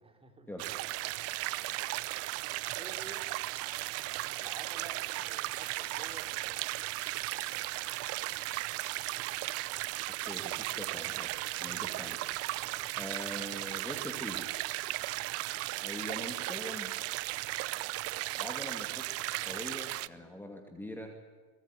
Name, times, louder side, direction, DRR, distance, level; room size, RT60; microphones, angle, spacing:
voice 1, 0.0-0.9 2.7-3.3 4.3-6.9 11.6-12.0 12.6-12.9, right 3 dB, 10° right, 5 dB, 3.2 m, -52 dB
sound 1, 0.6-20.1, right 18 dB, 35° right, 0.7 m, -36 dB
voice 2, 10.2-11.3 11.6-12.2 13.0-14.5 15.8-16.9 18.4-19.1 19.5-21.1, left 1 dB, 5° left, 3 dB, 2.4 m, -42 dB
23.5 x 20.5 x 9.7 m, 1.4 s
supercardioid pair, 140°, 44 cm